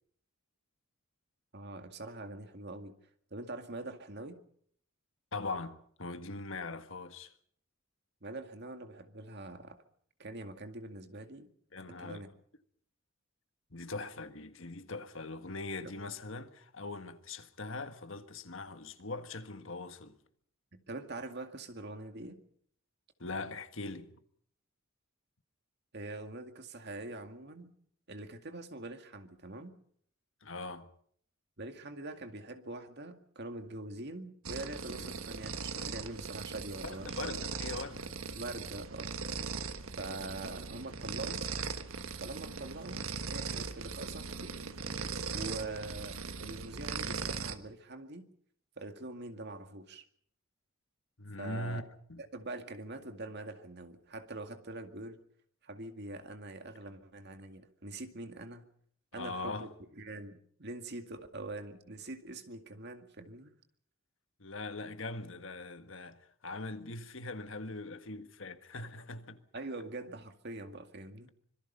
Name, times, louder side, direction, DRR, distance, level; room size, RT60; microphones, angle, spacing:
voice 1, 1.5-3.0 3.3-4.4 8.2-9.8 10.2-11.5 12.0-12.3 20.7-22.4 25.9-27.7 28.1-29.7 31.6-37.3 38.3-39.2 40.0-41.4 42.2-44.6 45.3-48.3 48.8-50.0 51.4-51.8 52.3-55.2 55.6-58.7 59.1-59.7 60.0-63.5 69.5-71.3, right 2 dB, 50° right, 2.1 m, -44 dB
voice 2, 5.3-7.3 11.7-12.2 13.7-20.2 23.2-24.2 30.4-30.9 34.9-35.1 36.8-38.1 51.2-52.2 59.1-59.7 64.4-69.4, left 3 dB, 65° left, 1.6 m, -41 dB
sound 1, 34.4-47.6, right 5 dB, 80° right, 1.5 m, -39 dB
25.5 x 22.5 x 5.6 m
head